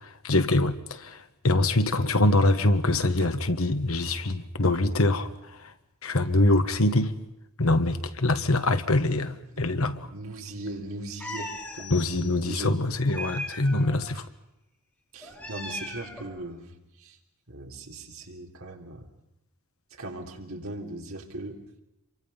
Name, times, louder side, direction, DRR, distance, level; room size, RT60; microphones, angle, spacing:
voice 1, 0.2-5.3 5.6-5.7 6.0-7.1 7.6-10.1 11.9-14.2, left 2 dB, 80° left, 1.5 m, -24 dB
voice 2, 10.1-12.8 15.1-17.2 17.5-19.1 19.9-21.6, right 2 dB, 75° right, 3.5 m, -39 dB
sound 1, 11.2-12.8, left 15 dB, 35° left, 7.4 m, -45 dB
Meow, 11.2-11.8 13.1-14.0 15.2-16.3, equal, 10° left, 4.7 m, -38 dB
27.0 x 24.0 x 5.6 m
head